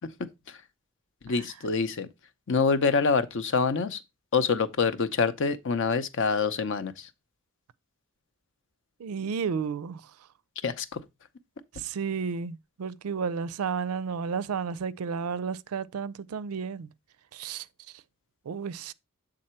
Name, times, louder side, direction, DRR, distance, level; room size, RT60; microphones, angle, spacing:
voice 1, 1.2-2.1 2.5-4.0 4.3-7.1 10.6-11.0, left 5 dB, 60° left, 0.6 m, -26 dB
voice 2, 9.0-10.0 11.7-16.9 17.3-17.7 18.5-18.9, right 6 dB, 75° right, 0.4 m, -32 dB
7.6 x 3.8 x 4.3 m
head